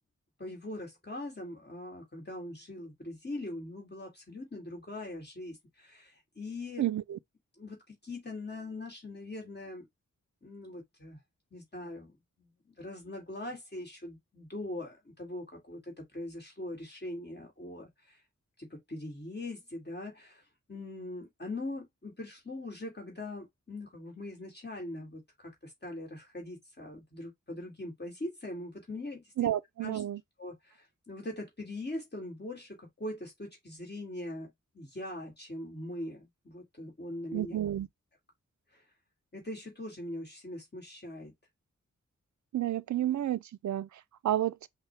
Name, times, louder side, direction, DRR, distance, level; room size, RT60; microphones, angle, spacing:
voice 1, 0.4-6.9 7.6-9.9 10.4-11.2 11.5-18.2 18.6-20.4 20.7-29.5 29.8-30.0 30.4-34.5 34.7-37.6 38.7-38.8 39.3-41.3, left 1 dB, 35° left, 2.1 m, -42 dB
voice 2, 6.8-7.2 29.4-30.2 37.3-37.9 42.5-44.7, right 12 dB, 70° right, 0.4 m, -31 dB
5.6 x 2.3 x 3.2 m
cardioid pair, 55°, 30 cm